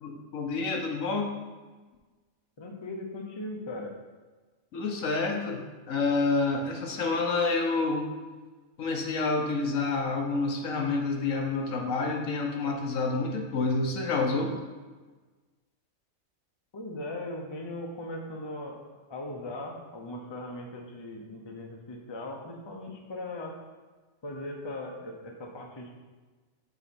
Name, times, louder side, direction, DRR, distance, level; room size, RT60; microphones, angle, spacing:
voice 1, 0.0-1.3 4.7-5.6 5.9-8.0 8.8-14.5, left 3 dB, 75° left, 2 dB, 1.3 m, -28 dB
voice 2, 2.6-3.9 16.7-18.8 19.1-23.5 24.2-25.9, left 1 dB, 25° left, 1 dB, 0.6 m, -39 dB
6.9 x 4.0 x 4.3 m, 1.3 s
omnidirectional pair, 1.4 m